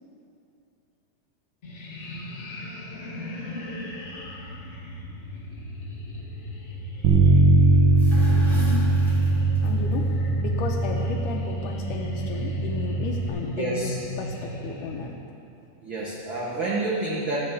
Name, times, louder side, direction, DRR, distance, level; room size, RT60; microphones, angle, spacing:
sound 1, 1.6-15.1, left 1 dB, 50° left, 0.8 m, -35 dB
Bass guitar, 7.0-13.3, right 3 dB, 80° right, 2.7 m, -21 dB
sound 2, 7.8-10.0, left 2 dB, ahead, 2.3 m, -37 dB
voice 1, 9.6-15.1, left 5 dB, 75° left, 0 dB, 2.3 m, -34 dB
voice 2, 13.5-13.9 15.8-17.4, right 2 dB, 50° right, -5 dB, 1.5 m, -28 dB
17.0 x 6.0 x 7.2 m, 2.6 s
omnidirectional pair, 3.8 m